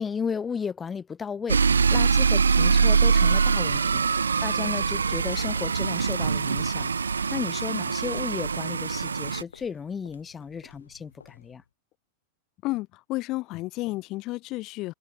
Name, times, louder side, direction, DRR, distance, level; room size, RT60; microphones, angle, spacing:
voice 1, 0.0-1.6 1.9-4.0 4.4-6.9 7.3-11.6, left 6 dB, 20° left, 1.4 m, -34 dB
sound 1, 1.5-9.4, right 5 dB, 75° right, 0.4 m, -23 dB
sound 2, 4.9-11.7, left 6 dB, 70° left, 4.7 m, -54 dB
voice 2, 12.6-14.9, left 20 dB, 40° left, 0.7 m, -31 dB
figure-of-eight pair, 90°, 0 cm